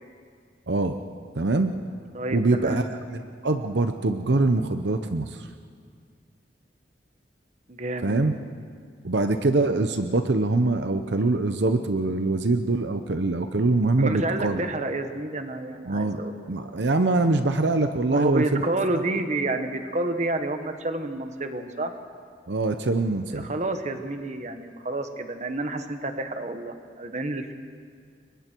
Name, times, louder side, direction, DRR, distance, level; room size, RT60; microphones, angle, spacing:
voice 1, 0.7-1.0 1.4-1.7 2.3-2.8 3.1-5.5 8.0-8.3 9.0-14.6 15.8-18.8 22.5-23.5, right 2 dB, 75° right, 8 dB, 0.8 m, -24 dB
voice 2, 2.1-2.8 7.7-8.2 14.0-16.5 18.1-21.9 23.3-27.5, right 2 dB, 40° right, 7 dB, 1.4 m, -29 dB
30.0 x 23.0 x 4.6 m, 2.1 s
head